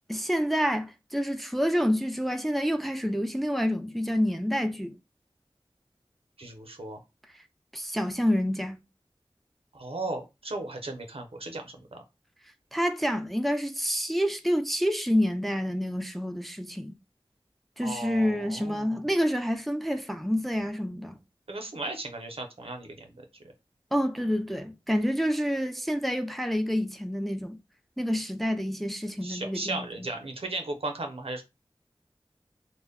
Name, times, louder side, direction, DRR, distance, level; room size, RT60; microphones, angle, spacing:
voice 1, 0.1-5.0 7.7-8.8 12.7-17.0 17.8-21.2 23.9-27.6 28.0-30.1, equal, ahead, 0.4 m, -28 dB
voice 2, 6.4-7.0 9.7-12.0 17.8-18.9 21.5-23.1 29.2-31.4, right 2 dB, 80° right, 0.6 m, -36 dB
2.1 x 2.1 x 3.5 m
wide cardioid pair, 45°, 10 cm